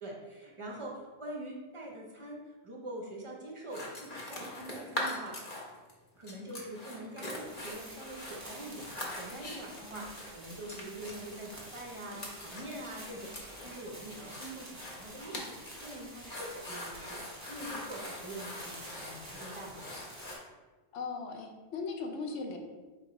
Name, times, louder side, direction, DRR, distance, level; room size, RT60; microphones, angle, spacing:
voice 1, 0.0-5.4 6.2-13.3 13.6-17.2 17.5-20.0, right 1 dB, 40° right, -1 dB, 0.5 m, -44 dB
sound 1, 3.7-5.9 6.2-20.3, left 1 dB, 45° left, 0.9 m, -42 dB
sound 2, 7.2-20.4, right 1 dB, 15° right, 0.8 m, -49 dB
voice 2, 9.8-10.1 20.9-22.6, left 4 dB, 75° left, 3 dB, 1.0 m, -38 dB
4.5 x 3.7 x 2.9 m, 1.3 s
omnidirectional pair, 1.3 m